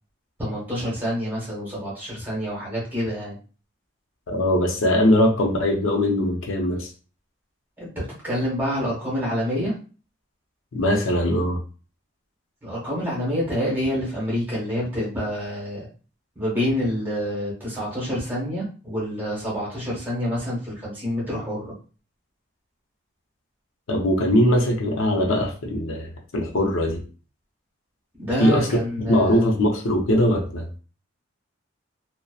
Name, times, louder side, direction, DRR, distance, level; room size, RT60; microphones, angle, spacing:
voice 1, 0.4-3.4 7.8-9.7 12.6-15.9 16.4-21.7 28.2-29.4, equal, 10° right, -6 dB, 1.0 m, -27 dB
voice 2, 4.3-6.9 10.7-11.6 23.9-27.0 28.4-28.7 29.0-30.7, left 1 dB, 80° left, 1 dB, 0.5 m, -21 dB
2.7 x 2.0 x 2.3 m, 0.37 s
head